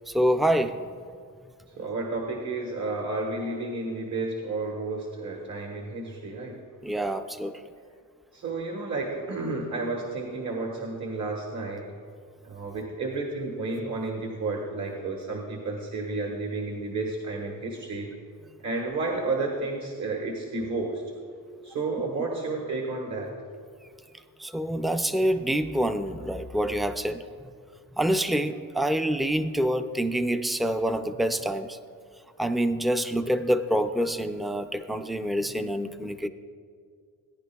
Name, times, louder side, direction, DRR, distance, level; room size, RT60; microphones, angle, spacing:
voice 1, 0.1-0.7 6.8-7.5 24.4-27.2 28.0-31.8 32.4-36.3, right 1 dB, ahead, 8 dB, 0.4 m, -26 dB
voice 2, 1.8-6.6 8.3-11.9 12.4-18.1 18.6-21.0 21.6-23.3, right 3 dB, 55° right, 0 dB, 1.4 m, -31 dB
18.0 x 10.0 x 2.3 m, 2.2 s
cardioid pair, 100°, 35 cm